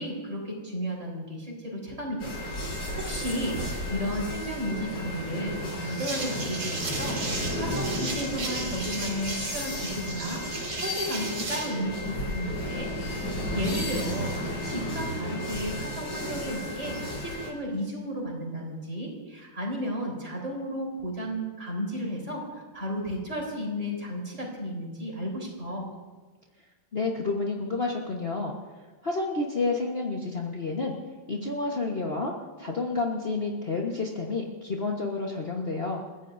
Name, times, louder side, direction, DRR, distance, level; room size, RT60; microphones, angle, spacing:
voice 1, 0.0-12.9 13.5-25.9, equal, 35° right, -2 dB, 4.6 m, -33 dB
sound 1, 2.2-17.5, left 1 dB, 80° left, 5.6 m, -33 dB
sound 2, 5.9-11.8, right 2 dB, 80° right, 3.7 m, -36 dB
voice 2, 26.9-28.5 29.0-31.0 31.3-36.0, left 3 dB, 35° left, -1 dB, 1.4 m, -30 dB
29.0 x 15.0 x 2.7 m, 1.3 s
omnidirectional pair, 2.2 m